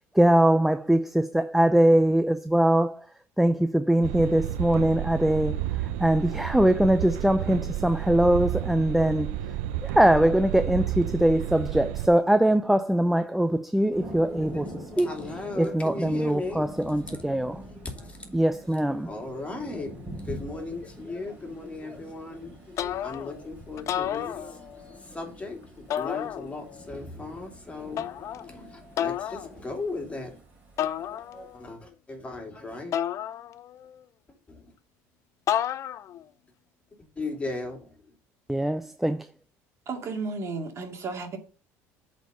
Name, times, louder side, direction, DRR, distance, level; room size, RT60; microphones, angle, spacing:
voice 1, 0.1-3.1 3.4-5.6 6.0-9.4 9.8-14.7 15.0-15.1 15.6-17.6 18.3-19.1 38.5-39.3, right 1 dB, 5° right, 0.5 m, -22 dB
sound 1, 4.0-12.1, right 12 dB, 85° right, 0.5 m, -31 dB
Thunder, 13.9-31.7, right 1 dB, 20° right, 4.2 m, -45 dB
voice 2, 14.1-18.3 18.8-19.9 20.2-30.4 31.0-32.9 34.5-34.7 37.2-38.0, left 3 dB, 20° left, 2.7 m, -38 dB
sound 2, 22.8-23.4 23.8-24.9 25.9-26.8 28.0-28.5 29.0-29.5 30.8-31.6 32.9-33.9 35.5-36.2, left 10 dB, 50° left, 0.5 m, -31 dB
voice 3, 39.9-41.4, right 4 dB, 45° right, 2.1 m, -33 dB
8.0 x 4.3 x 6.8 m
supercardioid pair, 95°, 7 cm